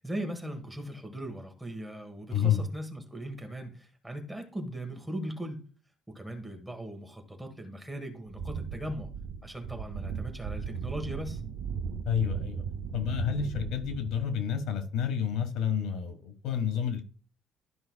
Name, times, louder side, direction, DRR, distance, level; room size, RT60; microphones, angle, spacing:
voice 1, 0.0-5.6 6.1-9.1 9.4-11.4, right 1 dB, 5° right, 1.3 m, -39 dB
sound 1, 8.3-14.3, right 6 dB, 85° right, 1.5 m, -37 dB
voice 2, 12.0-12.6 12.9-17.0, left 8 dB, 80° left, 1.4 m, -29 dB
13.0 x 5.4 x 2.3 m
cardioid pair, 165°, 0 cm